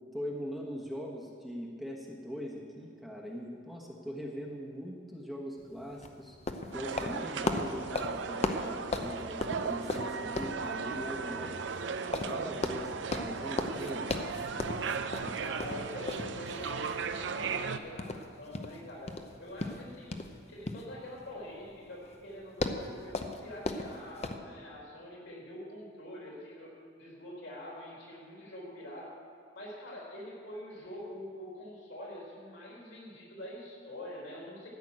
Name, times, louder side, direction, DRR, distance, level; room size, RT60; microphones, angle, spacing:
voice 1, 0.1-6.4 6.7-11.6 12.3-14.0, equal, ahead, -2 dB, 1.2 m, -41 dB
sound 1, 5.6-24.4, left 2 dB, 35° left, 0.7 m, -38 dB
sound 2, 6.7-17.8, right 5 dB, 65° right, 0.5 m, -37 dB
voice 2, 15.3-20.2 20.5-29.2 29.5-34.7, left 1 dB, 75° left, -3 dB, 3.8 m, -45 dB
13.5 x 6.3 x 8.8 m, 2.2 s
head